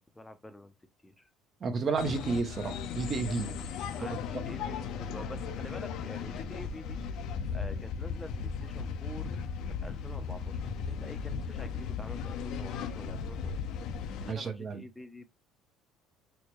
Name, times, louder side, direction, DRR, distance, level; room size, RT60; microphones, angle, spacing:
voice 1, 0.1-0.7 1.0-1.2 4.0-7.0 7.5-9.3 9.8-10.6 10.9-13.8 14.2-15.2, left 1 dB, 10° left, 0.5 m, -47 dB
voice 2, 1.6-3.5 4.3-4.4 14.3-14.8, right 4 dB, 40° right, 0.7 m, -31 dB
sound 1, 2.0-14.3, left 6 dB, 70° left, 0.5 m, -36 dB
4.4 x 2.2 x 3.0 m
supercardioid pair, 90°, 0 cm